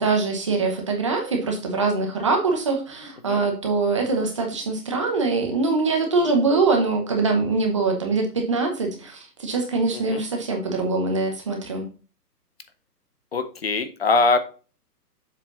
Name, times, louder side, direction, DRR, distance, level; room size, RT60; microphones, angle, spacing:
voice 1, 0.0-11.9, right 3 dB, 20° right, 2 dB, 0.9 m, -23 dB
voice 2, 13.3-14.4, left 3 dB, 40° left, 10 dB, 0.8 m, -22 dB
7.5 x 4.3 x 3.8 m, 0.36 s
hypercardioid pair, 170°, 49 cm